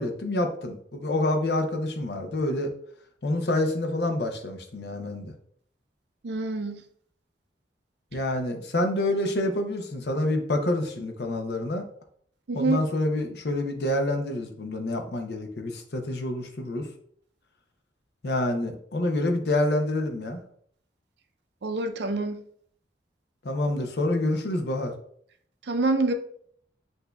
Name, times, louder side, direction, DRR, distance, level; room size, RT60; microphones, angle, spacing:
voice 1, 0.0-2.7 3.2-5.3 8.1-11.9 12.5-16.9 18.2-20.4 23.4-24.9, left 1 dB, 60° left, 5 dB, 0.6 m, -27 dB
voice 2, 6.2-6.9 12.5-12.8 21.6-22.4 25.7-26.1, right 2 dB, 65° right, 6 dB, 0.5 m, -26 dB
8.0 x 2.7 x 2.2 m, 0.63 s
head